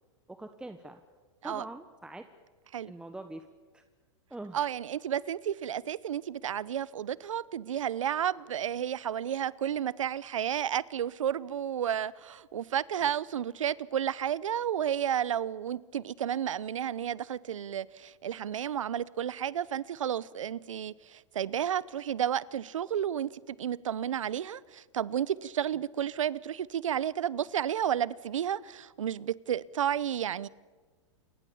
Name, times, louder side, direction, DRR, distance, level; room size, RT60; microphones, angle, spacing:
voice 1, 0.3-1.0 1.4-2.2 2.9-3.5 3.7-3.8 4.3-4.6 25.7-25.8, right 2 dB, 5° right, 1.3 m, -43 dB
voice 2, 4.5-30.5, right 9 dB, 85° right, 0.9 m, -32 dB
28.5 x 24.0 x 7.2 m
hypercardioid pair, 120°, 16 cm